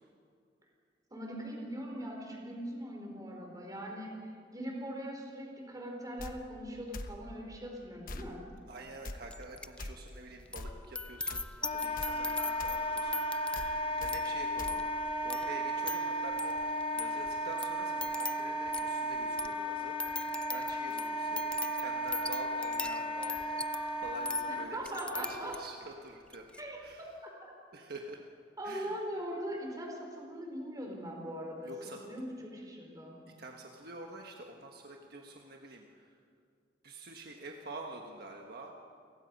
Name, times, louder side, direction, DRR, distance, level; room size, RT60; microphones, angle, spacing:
voice 1, 1.1-4.2 4.5-8.4 24.5-25.5 26.6-26.8 28.6-31.7 32.0-33.2, equal, 20° right, 0 dB, 4.3 m, -41 dB
sound 1, 6.2-6.3 6.9-7.2 8.1-8.3 9.0-9.2 9.8-9.9 10.6-10.8 11.3-11.5 12.0-12.1 12.6-12.8 13.6-13.7 14.0-14.1 14.6-14.8, left 2 dB, 50° left, 1.1 m, -42 dB
voice 2, 8.7-13.3 14.0-19.9 20.5-23.4 24.0-24.8 25.1-26.4 26.8-27.1 27.7-28.2 28.6-29.0 31.6-32.0 33.4-36.1 36.8-38.7, right 2 dB, 60° right, 2 dB, 1.4 m, -47 dB
sound 2, 9.3-9.8 10.1-25.8 26.3-26.6, left 3 dB, 5° left, 0.4 m, -42 dB
Wind instrument woodwind instrument, 11.6-24.7, equal, 30° left, 1.2 m, -35 dB
30.0 x 16.0 x 5.4 m, 2.2 s
head